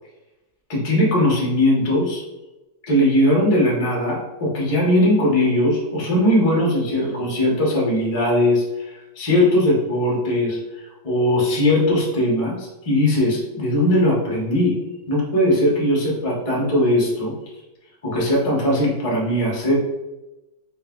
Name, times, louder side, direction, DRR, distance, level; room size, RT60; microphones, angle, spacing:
voice 1, 0.7-2.2 2.9-14.8 15.1-17.3 18.0-19.8, left 1 dB, 40° left, -4 dB, 0.4 m, -19 dB
3.9 x 2.5 x 3.6 m, 1.0 s
omnidirectional pair, 2.2 m